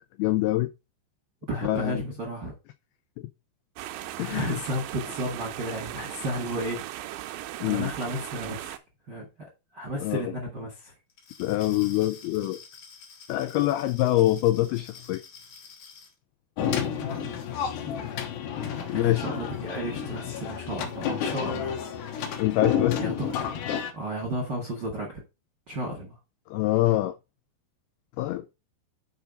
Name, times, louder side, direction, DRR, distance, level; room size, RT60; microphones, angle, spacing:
voice 1, 0.2-0.7 1.6-2.0 4.2-4.6 7.6-7.9 10.0-10.3 11.4-12.6 13.3-15.2 18.9-19.3 22.4-23.1 26.5-27.1 28.2-28.6, left 16 dB, 85° left, 2.2 m, -25 dB
voice 2, 1.5-2.5 4.3-6.8 7.1-8.8 9.1-9.3 9.7-10.9 17.0-17.3 17.9-18.1 18.9-21.8 23.0-23.4 23.9-25.2 25.7-26.2, right 1 dB, 45° right, 1.4 m, -33 dB
sound 1, 3.8-8.8, right 14 dB, 85° right, 2.9 m, -38 dB
Glass, 11.1-16.1, left 5 dB, 50° left, 2.8 m, -48 dB
sound 2, 16.6-23.9, left 8 dB, 70° left, 2.6 m, -30 dB
6.8 x 4.7 x 5.1 m
omnidirectional pair, 5.0 m